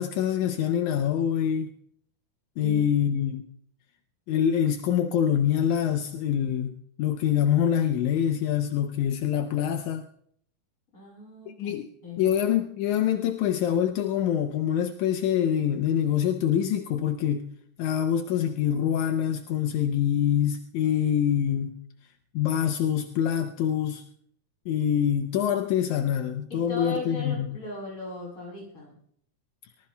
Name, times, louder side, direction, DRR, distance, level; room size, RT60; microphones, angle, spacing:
voice 1, 0.0-1.7 2.6-3.4 4.3-10.0 11.6-11.9 12.2-17.5 17.8-21.8 22.3-24.0 24.7-27.5, left 9 dB, 80° left, 6 dB, 2.1 m, -25 dB
voice 2, 2.6-3.1 10.9-11.8 12.0-12.4 26.5-29.0, left 2 dB, 45° left, -2 dB, 8.8 m, -38 dB
23.5 x 19.5 x 2.3 m, 0.64 s
omnidirectional pair, 3.5 m